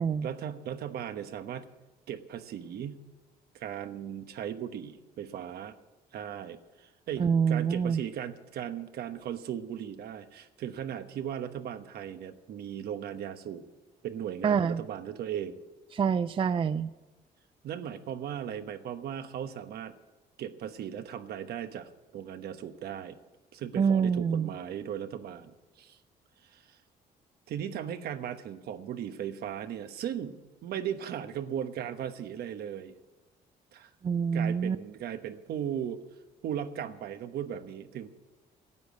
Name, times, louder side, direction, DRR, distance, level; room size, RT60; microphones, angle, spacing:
voice 1, 0.2-1.7 2.1-3.0 3.5-5.8 6.1-13.7 14.0-15.6 17.6-19.9 20.4-23.2 23.5-26.0 26.4-26.8 27.5-32.9 33.7-33.9 34.3-36.0 36.4-38.1, right 9 dB, 70° right, 9 dB, 1.1 m, -37 dB
voice 2, 7.2-8.0 14.4-14.8 15.9-16.9 23.8-24.5 34.0-34.8, right 6 dB, 30° right, 14 dB, 0.4 m, -26 dB
12.5 x 8.4 x 9.4 m, 1.2 s
cardioid pair, 105°, 17 cm